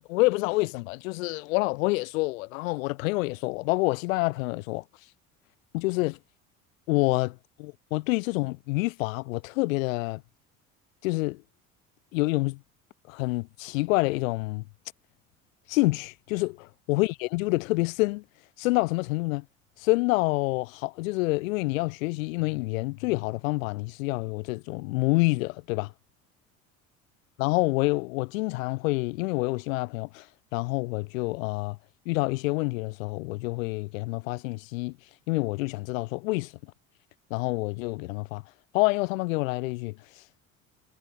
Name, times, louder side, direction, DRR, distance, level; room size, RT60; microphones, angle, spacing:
voice 1, 0.0-4.8 5.7-6.2 6.9-10.2 11.0-11.4 12.1-12.6 13.1-14.6 15.7-18.2 18.6-19.4 19.8-25.9 27.4-30.2 30.5-31.8 32.1-34.9 35.3-36.5 37.3-38.4 38.7-39.9, left 23 dB, 75° left, 1.0 m, -27 dB
hypercardioid pair, 60°, 40 cm